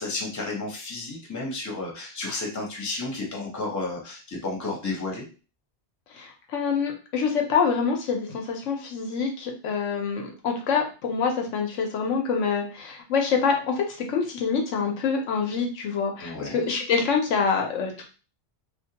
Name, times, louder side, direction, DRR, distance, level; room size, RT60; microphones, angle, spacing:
voice 1, 0.0-5.3 16.2-16.6, left 3 dB, 20° left, -1 dB, 0.6 m, -32 dB
voice 2, 6.1-18.0, left 5 dB, 90° left, 2 dB, 1.0 m, -26 dB
2.4 x 2.1 x 2.8 m, 0.34 s
omnidirectional pair, 1.2 m